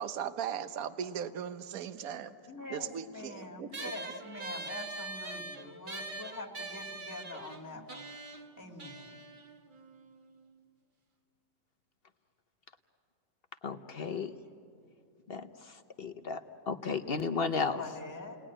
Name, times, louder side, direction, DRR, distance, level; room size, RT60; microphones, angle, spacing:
voice 1, 0.0-2.3 2.7-3.9, right 8 dB, 60° right, 11 dB, 1.3 m, -38 dB
voice 2, 2.5-8.0 8.6-9.2 17.8-18.4, left 2 dB, 10° left, 0 dB, 1.8 m, -45 dB
sound 1, 3.7-10.5, right 2 dB, 35° right, 1.1 m, -43 dB
voice 3, 13.6-14.3 15.3-15.5 16.0-17.8, left 4 dB, 50° left, 8 dB, 0.8 m, -33 dB
29.5 x 19.5 x 9.9 m, 2.5 s
omnidirectional pair, 1.9 m